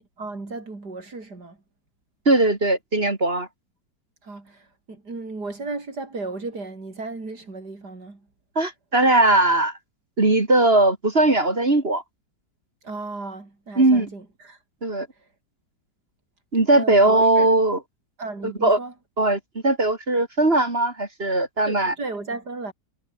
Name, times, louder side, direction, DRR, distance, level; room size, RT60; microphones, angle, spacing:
voice 1, 0.2-1.6 4.2-8.3 12.8-14.6 16.7-17.6 18.2-18.9 21.7-22.7, right 3 dB, 65° right, 5.3 m, -35 dB
voice 2, 2.3-3.5 8.5-9.7 10.2-12.0 13.8-14.1 14.8-15.1 16.5-17.8 18.4-18.8 19.2-21.9, right 2 dB, 35° right, 3.0 m, -19 dB
omnidirectional pair, 1.9 m